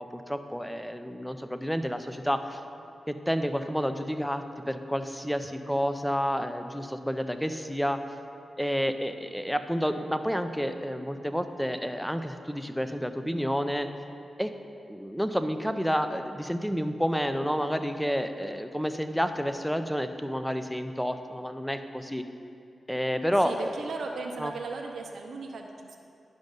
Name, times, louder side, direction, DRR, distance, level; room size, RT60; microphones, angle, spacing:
voice 1, 0.0-2.6 3.1-8.0 8.6-13.9 14.4-14.5 14.9-22.2 22.9-23.7 24.4-24.5, equal, ahead, 8 dB, 0.6 m, -30 dB
voice 2, 23.4-26.0, right 4 dB, 80° right, 2 dB, 0.7 m, -37 dB
10.5 x 5.3 x 5.3 m, 2.6 s
cardioid pair, 55°, 0 cm